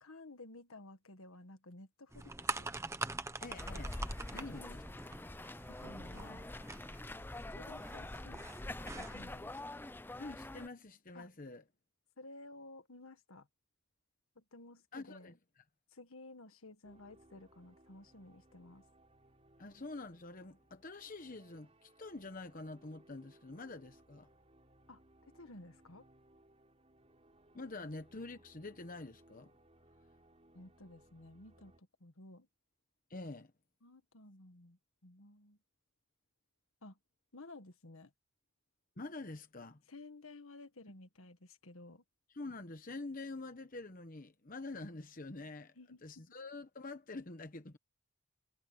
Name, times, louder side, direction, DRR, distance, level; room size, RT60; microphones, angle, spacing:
voice 1, 0.0-2.7 4.3-4.7 5.7-6.5 7.5-9.8 11.1-11.3 12.2-13.5 14.3-15.3 15.9-18.8 24.9-26.1 30.5-32.5 33.8-35.6 36.8-37.0 37.3-38.1 39.9-42.0 45.7-46.3, left 2 dB, 70° left, 1.7 m, -54 dB
sound 1, 2.1-9.4, right 3 dB, 15° right, 0.9 m, -45 dB
voice 2, 3.4-4.8 10.2-11.6 14.9-15.4 19.6-24.3 27.5-29.5 33.1-33.5 39.0-39.8 42.3-45.7 46.0-47.8, left 2 dB, 40° left, 1.0 m, -46 dB
sound 2, 3.6-10.7, left 1 dB, 10° left, 0.4 m, -45 dB
sound 3, 16.8-31.8, right 1 dB, 30° right, 3.8 m, -65 dB
head